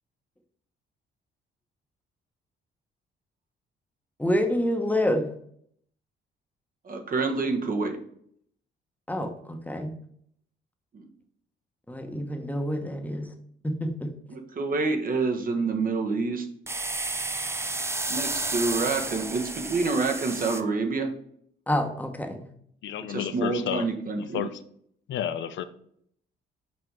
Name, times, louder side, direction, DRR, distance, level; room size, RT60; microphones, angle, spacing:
voice 1, 4.2-5.3 9.1-9.9 11.9-13.3 13.6-14.1 21.7-22.5, left 1 dB, 10° left, 1.1 m, -27 dB
voice 2, 6.8-8.0 10.9-11.1 14.3-16.5 18.1-21.1 23.1-24.5, right 3 dB, 45° right, 1.2 m, -27 dB
sound 1, 16.7-20.6, right 2 dB, 15° right, 0.6 m, -31 dB
voice 3, 22.8-24.0 24.3-24.6 25.1-25.6, left 9 dB, 70° left, 0.6 m, -31 dB
6.1 x 4.4 x 4.7 m
cardioid pair, 90°, 20 cm